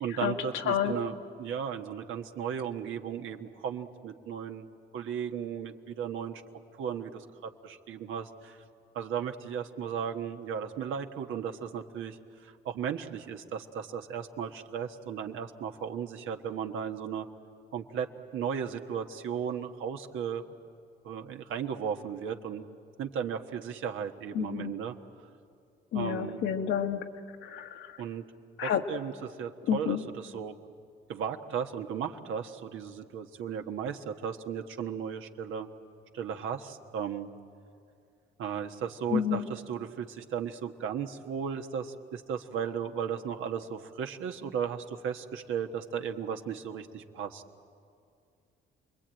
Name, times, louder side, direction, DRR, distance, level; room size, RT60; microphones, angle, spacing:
voice 1, 0.0-4.7 4.9-6.4 6.8-8.6 8.9-12.2 12.4-17.3 17.7-18.1 18.3-20.5 21.0-22.6 23.0-24.9 25.9-26.4 28.0-28.2 28.6-30.5 31.1-35.7 36.1-37.3 38.4-47.4, right 7 dB, 85° right, 5 dB, 1.4 m, -35 dB
voice 2, 24.3-24.7 25.9-27.0 27.4-27.9 28.6-28.8 29.7-30.0 39.1-39.4, left 8 dB, 90° left, 4 dB, 1.7 m, -29 dB
28.5 x 21.5 x 9.0 m, 2.4 s
cardioid pair, 90°, 20 cm